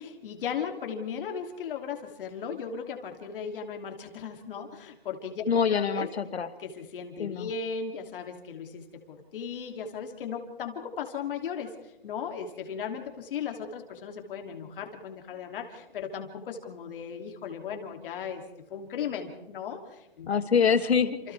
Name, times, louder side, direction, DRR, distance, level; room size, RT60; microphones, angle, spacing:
voice 1, 0.0-6.1 6.6-18.4 18.7-20.3 21.2-21.3, left 6 dB, 60° left, 3 dB, 3.1 m, -37 dB
voice 2, 5.5-6.5 7.2-7.5 20.3-21.2, left 6 dB, 85° left, 11 dB, 1.7 m, -25 dB
29.5 x 28.0 x 3.5 m, 0.97 s
hypercardioid pair, 140°, 31 cm